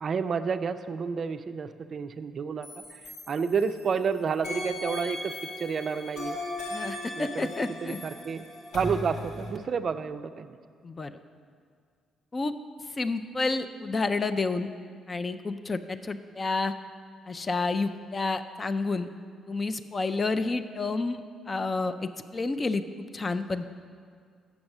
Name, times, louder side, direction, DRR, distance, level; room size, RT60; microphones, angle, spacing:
voice 1, 0.0-3.0 3.3-5.3 5.6-6.4 7.2-8.5 8.7-10.6, right 6 dB, 50° right, 10 dB, 0.3 m, -30 dB
sound 1, 2.6-4.0 4.4-9.5, left 1 dB, 90° left, 2.0 m, -37 dB
voice 2, 6.7-8.0 10.8-11.1 12.3-12.5 13.0-14.7 15.1-16.7 17.3-19.1 19.5-23.6, left 3 dB, 30° left, 11 dB, 0.4 m, -30 dB
7.1 x 5.9 x 6.5 m, 2.1 s
cardioid pair, 90°, 0 cm